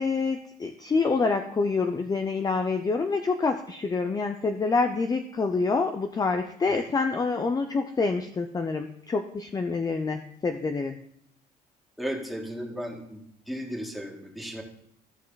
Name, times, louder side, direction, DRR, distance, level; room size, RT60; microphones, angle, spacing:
voice 1, 0.0-11.0, left 4 dB, 25° left, 6 dB, 0.6 m, -27 dB
voice 2, 12.0-13.2 13.5-14.6, equal, ahead, 2 dB, 1.9 m, -34 dB
14.5 x 5.5 x 4.0 m, 0.69 s
cardioid pair, 110°, 17 cm